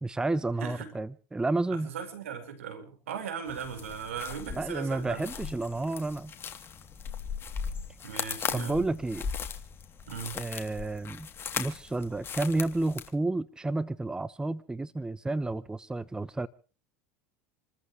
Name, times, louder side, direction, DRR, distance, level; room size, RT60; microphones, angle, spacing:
voice 1, 0.0-1.9 4.5-6.3 8.5-9.3 10.3-11.3 11.6-16.5, right 2 dB, 10° right, 0.9 m, -31 dB
voice 2, 0.6-0.9 1.7-5.2 8.0-8.8 10.1-10.4, right 7 dB, 80° right, 4.8 m, -38 dB
sound 1, 3.5-13.1, left 6 dB, 35° left, 3.0 m, -38 dB
28.5 x 14.0 x 3.2 m
hypercardioid pair, 85°, 7 cm